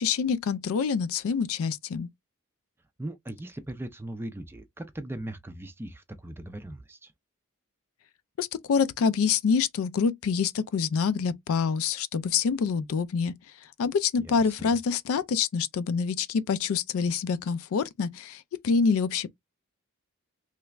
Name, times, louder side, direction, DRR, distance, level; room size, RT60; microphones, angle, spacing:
voice 1, 0.0-2.1 8.4-13.3 13.8-19.3, left 5 dB, 65° left, 0.3 m, -26 dB
voice 2, 3.0-7.1 14.2-14.8, right 1 dB, 10° right, 0.4 m, -39 dB
3.2 x 2.4 x 3.0 m
head